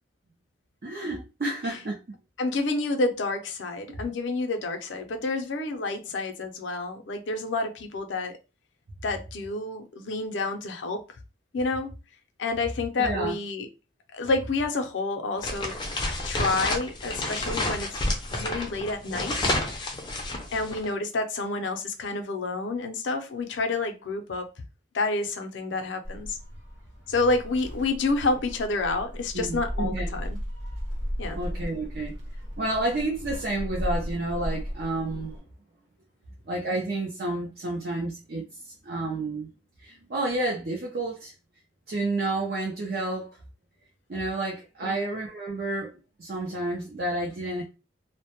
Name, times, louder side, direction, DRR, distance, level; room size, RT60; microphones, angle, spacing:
voice 1, 0.8-2.2 3.9-4.0 13.0-13.4 29.3-30.1 31.3-32.2 32.6-35.4 36.5-39.5 39.8-41.3 41.9-43.4 44.1-45.9 46.2-47.6, right 2 dB, 50° right, 0.5 m, -30 dB
voice 2, 2.4-8.4 9.0-11.0 11.5-12.0 12.4-13.7 14.1-15.8 16.2-19.3 19.7-19.8 20.5-24.5 24.9-26.4 27.1-30.4 31.2-31.4 44.8-45.0, left 3 dB, 80° left, 0.5 m, -29 dB
sound 1, 15.4-20.9, left 2 dB, 25° left, 0.4 m, -30 dB
Gull seagull, 26.0-35.4, equal, 70° right, 1.0 m, -35 dB
2.1 x 2.0 x 2.8 m
head